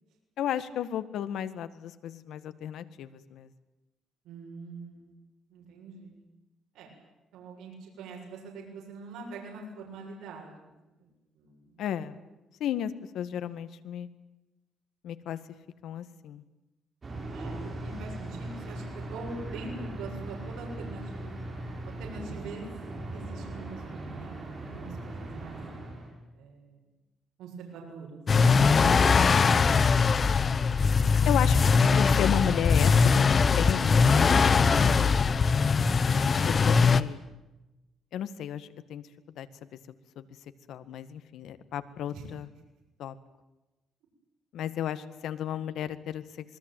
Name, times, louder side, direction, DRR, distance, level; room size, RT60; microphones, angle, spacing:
voice 1, 0.4-3.5 11.8-12.2 12.6-14.1 15.0-15.4 15.8-16.4 31.2-31.6 32.0-35.5 36.5-37.2 38.1-39.0 39.4-39.5 40.1-40.2 40.7-42.5 43.0-43.1 44.5-46.2, left 10 dB, 70° left, 12 dB, 1.8 m, -34 dB
voice 2, 4.2-5.2 5.5-6.2 6.7-6.9 7.3-10.5 10.9-11.1 11.3-11.8 17.3-18.8 19.1-21.4 21.8-22.6 23.1-25.6 26.3-26.8 27.4-28.2 28.5-28.8 42.1-42.2, right 3 dB, 85° right, -1 dB, 7.3 m, -44 dB
sound 1, 17.0-26.1, right 2 dB, 30° right, 8.0 m, -39 dB
sound 2, 28.3-37.0, left 5 dB, 30° left, 1.0 m, -21 dB
26.5 x 21.0 x 9.2 m, 1.0 s
cardioid pair, 135°, 0 cm